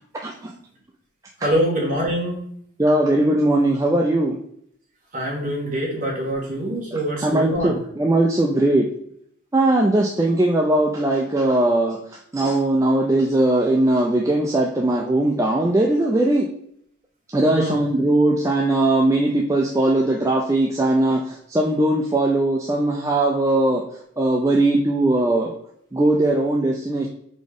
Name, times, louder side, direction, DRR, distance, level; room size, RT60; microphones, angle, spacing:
voice 1, 0.2-0.6 2.8-4.4 7.2-8.9 9.5-16.5 17.3-23.8 24.2-25.5 25.9-27.1, right 1 dB, 15° right, -1 dB, 0.3 m, -19 dB
voice 2, 1.4-2.4 5.1-7.8 17.5-17.8, equal, 40° right, -3 dB, 1.4 m, -24 dB
4.1 x 3.6 x 3.5 m, 0.69 s
head